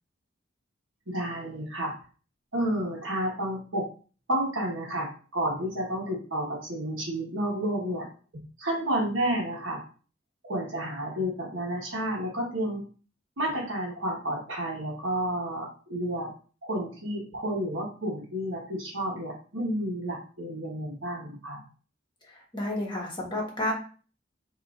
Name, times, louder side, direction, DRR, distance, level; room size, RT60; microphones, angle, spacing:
voice 1, 1.1-1.9 2.5-3.9 4.3-8.1 8.3-9.8 10.4-12.8 13.4-16.3 16.6-21.6, right 1 dB, 80° right, -1 dB, 1.5 m, -31 dB
voice 2, 22.3-23.7, left 1 dB, 25° left, -2 dB, 1.4 m, -31 dB
5.9 x 3.0 x 2.5 m, 0.38 s
head